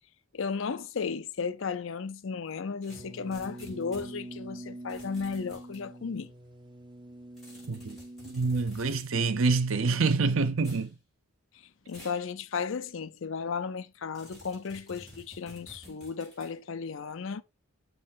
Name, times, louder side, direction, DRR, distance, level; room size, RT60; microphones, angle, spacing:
voice 1, 0.3-6.3 11.9-17.4, left 5 dB, 60° left, 0.5 m, -34 dB
sound 1, 2.8-4.1 4.9-5.8 7.4-9.1 10.6-10.9 11.9-12.2 12.7-12.8 14.1-16.5, equal, ahead, 4.7 m, -51 dB
sound 2, 2.9-8.3, right 1 dB, 20° right, 0.9 m, -45 dB
voice 2, 8.2-10.9, right 4 dB, 70° right, 0.7 m, -26 dB
7.3 x 4.0 x 4.0 m
head